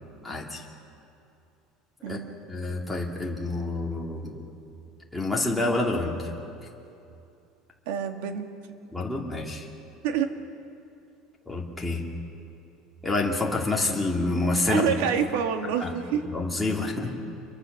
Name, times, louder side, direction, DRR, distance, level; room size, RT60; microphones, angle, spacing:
voice 1, 0.2-0.7 2.0-2.2 2.5-4.4 5.1-6.3 8.9-9.7 11.5-12.0 13.0-15.0 15.8-15.9 16.3-17.1, left 2 dB, 5° left, -3 dB, 2.4 m, -28 dB
voice 2, 2.0-2.4 7.9-8.5 10.0-10.3 14.7-16.3, right 8 dB, 90° right, 6 dB, 1.9 m, -27 dB
27.5 x 23.0 x 6.7 m, 2.7 s
cardioid pair, 170°, 0 cm